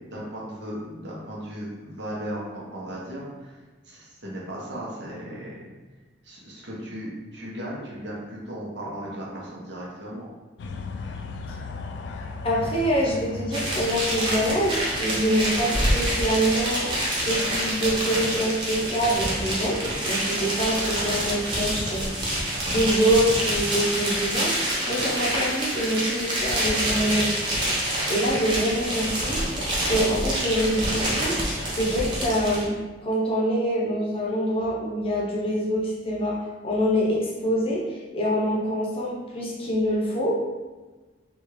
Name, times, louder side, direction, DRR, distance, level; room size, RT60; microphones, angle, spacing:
voice 1, 0.0-5.6 6.2-10.3, equal, 70° right, -4 dB, 0.9 m, -36 dB
sound 1, 10.6-15.5, left 3 dB, 65° left, 0.3 m, -37 dB
voice 2, 12.4-16.9 17.2-22.3 22.7-24.5 24.9-27.3 28.1-29.4 29.8-31.4 31.8-32.8 33.0-40.4, equal, 30° left, -3 dB, 0.7 m, -25 dB
sound 2, 13.5-32.6, right 1 dB, 25° right, 0.7 m, -27 dB
3.4 x 2.4 x 3.1 m, 1.3 s
head